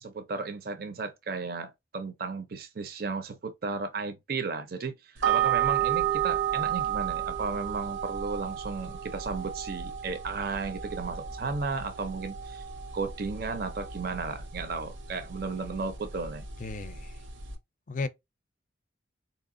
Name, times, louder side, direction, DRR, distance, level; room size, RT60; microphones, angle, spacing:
voice 1, 0.0-12.6 12.9-16.5, right 4 dB, 50° right, 0.5 m, -34 dB
sound 1, 5.2-17.6, right 10 dB, 90° right, 1.0 m, -32 dB
voice 2, 16.6-17.2 17.9-18.1, left 3 dB, 40° left, 0.5 m, -34 dB
4.2 x 2.8 x 2.5 m
head